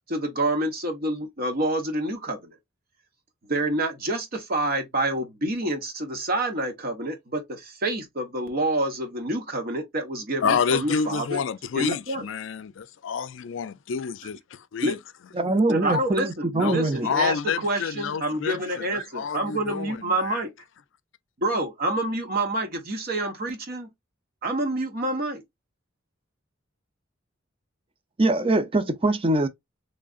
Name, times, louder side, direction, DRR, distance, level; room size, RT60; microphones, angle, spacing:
voice 1, 0.1-2.5 3.5-11.4 11.8-12.3 14.8-15.0 15.7-20.5 21.4-23.9 24.4-25.4, right 1 dB, 50° right, 1.0 m, -28 dB
voice 2, 10.4-15.0 15.9-16.0 16.5-20.4, left 6 dB, 70° left, 0.4 m, -29 dB
voice 3, 15.3-17.1 28.2-29.5, right 2 dB, 30° right, 0.5 m, -23 dB
3.7 x 3.3 x 2.4 m
head